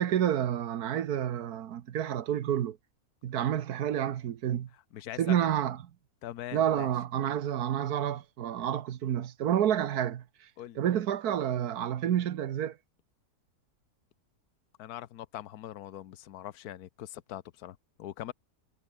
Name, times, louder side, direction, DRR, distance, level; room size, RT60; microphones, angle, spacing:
voice 1, 0.0-2.8 3.2-4.7 5.2-5.8 6.5-10.2 10.8-12.8, right 10 dB, 75° right, 1.4 m, -29 dB
voice 2, 4.7-5.5 6.2-6.9 10.6-10.8 14.8-18.3, left 12 dB, 75° left, 1.3 m, -42 dB
omnidirectional pair, 1.7 m